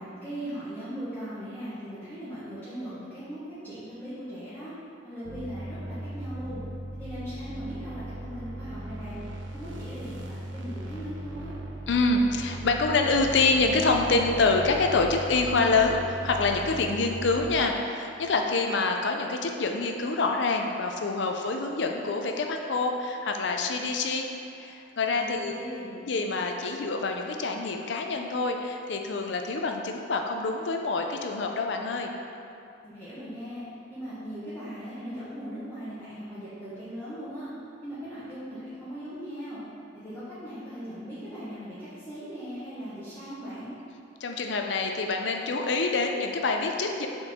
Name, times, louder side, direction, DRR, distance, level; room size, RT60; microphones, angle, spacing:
voice 1, 0.0-4.7 5.0-6.6 7.0-9.2 9.5-11.5 25.2-26.0 32.8-33.6 33.9-37.5 37.8-39.6 40.0-43.7, equal, 10° left, -15 dB, 1.3 m, -39 dB
sound 1, 5.2-17.6, right 1 dB, 80° right, 0.6 m, -38 dB
voice 2, 11.9-24.3 24.6-25.5 26.0-32.1 44.2-47.1, left 3 dB, 65° left, 3 dB, 0.6 m, -26 dB
6.6 x 4.5 x 3.6 m, 2.7 s
head